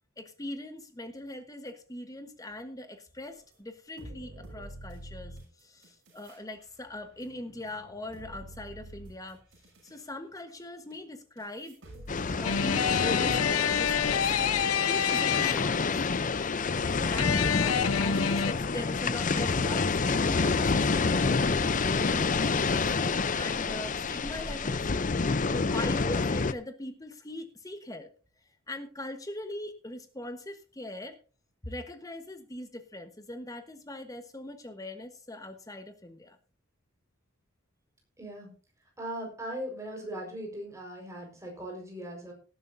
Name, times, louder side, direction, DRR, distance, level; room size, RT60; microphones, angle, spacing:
voice 1, 0.2-9.4 9.8-11.8 12.4-14.3 14.8-16.1 17.1-24.9 25.5-28.1 28.7-31.2 31.6-36.4, left 1 dB, 15° left, 8 dB, 1.2 m, -41 dB
sound 1, 3.5-3.6 4.0-6.4 6.7-10.0 10.9-11.0 11.4-18.8 19.2-19.7 20.1-20.2 20.6-23.0, right 1 dB, 60° right, 6.7 m, -47 dB
sound 2, 12.1-26.5, left 4 dB, 35° left, 0.6 m, -28 dB
sound 3, 12.4-15.9 17.2-18.5, left 8 dB, 85° left, 0.6 m, -28 dB
voice 2, 38.2-38.5 39.0-42.3, right 1 dB, 15° right, 0 dB, 4.8 m, -39 dB
18.5 x 11.0 x 2.7 m, 0.36 s
head